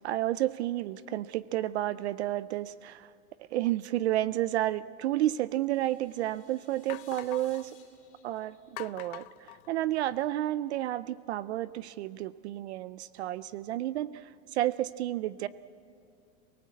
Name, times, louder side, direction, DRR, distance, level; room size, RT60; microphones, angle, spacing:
voice 1, 0.0-3.1 3.5-7.7 8.2-15.5, right 14 dB, 50° right, 17 dB, 0.5 m, -31 dB
sound 1, 5.5-5.6 6.2-6.3 6.9-7.7 8.8-10.3, left 18 dB, 90° left, 0.7 m, -45 dB
sound 2, 5.7-9.8, left 7 dB, 20° left, 4.1 m, -61 dB
28.5 x 18.5 x 8.3 m, 2.6 s
supercardioid pair, 180°, 42 cm